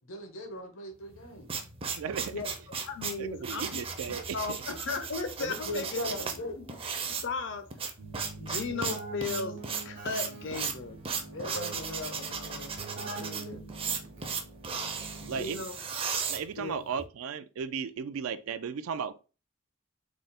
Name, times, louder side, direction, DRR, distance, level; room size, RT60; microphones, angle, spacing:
voice 1, 0.1-1.5 5.4-6.6 11.3-12.7 13.2-14.0, left 1 dB, 80° left, 1.0 m, -39 dB
sound 1, 1.1-17.0, right 5 dB, 25° right, 0.5 m, -36 dB
voice 2, 2.0-2.3 3.2-4.4 15.3-15.7 16.3-19.2, right 6 dB, 85° right, 0.4 m, -35 dB
voice 3, 2.8-3.8 4.3-6.0 6.6-6.8 7.1-7.7 8.4-11.0 11.4-11.6 15.2-15.8 16.6-16.9, left 4 dB, 60° left, 0.6 m, -36 dB
Keyboard (musical), 8.0-15.9, right 3 dB, 60° right, 0.9 m, -44 dB
3.6 x 2.1 x 4.1 m
head